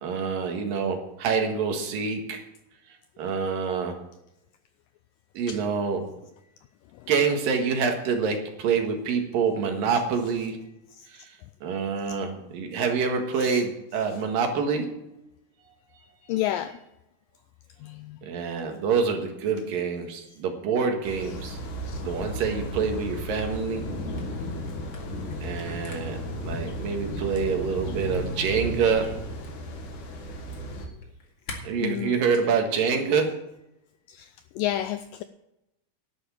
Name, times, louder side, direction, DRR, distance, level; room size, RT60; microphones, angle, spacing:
voice 1, 0.0-2.4 3.2-3.9 5.3-6.1 7.1-10.6 11.1-11.3 11.6-14.9 18.2-21.6 22.0-23.8 25.4-29.2 31.6-33.3, right 5 dB, 65° right, 4 dB, 3.1 m, -26 dB
voice 2, 16.3-16.8 17.8-18.2 21.8-22.0 30.8-31.0 31.8-32.6 34.1-35.2, left 13 dB, 85° left, 11 dB, 2.0 m, -32 dB
sound 1, 21.0-30.9, equal, 60° left, 2.9 m, -34 dB
Camera, 24.1-31.6, left 3 dB, 35° left, 2.4 m, -47 dB
11.5 x 7.0 x 8.8 m, 0.89 s
omnidirectional pair, 4.4 m